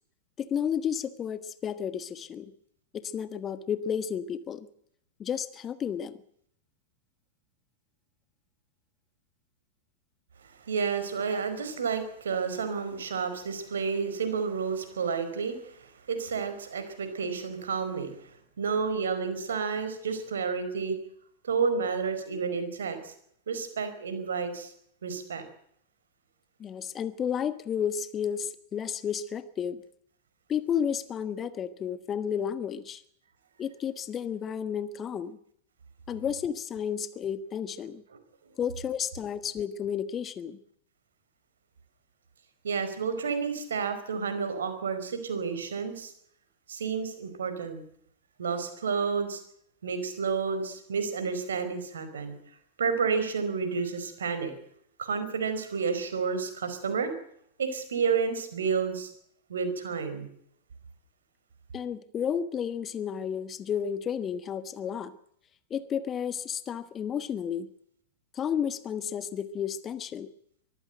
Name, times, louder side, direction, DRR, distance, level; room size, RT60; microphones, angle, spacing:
voice 1, 0.4-2.5 2.9-4.7 5.2-6.1 11.3-11.4 26.6-29.8 30.5-33.0 33.6-35.4 36.1-38.0 38.6-40.6 61.7-65.1 65.7-67.7 68.3-70.3, left 8 dB, 25° left, 13 dB, 1.5 m, -32 dB
voice 2, 10.7-15.7 16.1-18.1 18.6-21.0 21.4-23.1 23.5-24.7 25.0-25.4 42.6-46.1 46.7-47.8 48.4-49.4 49.8-52.4 52.8-54.5 55.0-57.1 57.6-59.1 59.5-60.3, right 5 dB, 65° right, 9 dB, 4.8 m, -30 dB
23.5 x 15.0 x 8.1 m, 0.69 s
figure-of-eight pair, 95°, 0 cm